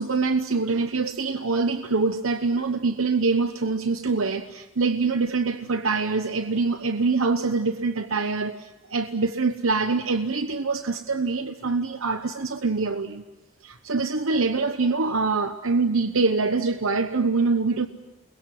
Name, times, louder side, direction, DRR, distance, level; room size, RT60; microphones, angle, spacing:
voice 1, 0.0-13.2 13.6-17.9, right 4 dB, 75° right, 8 dB, 1.0 m, -24 dB
29.0 x 21.5 x 7.6 m, 1.1 s
head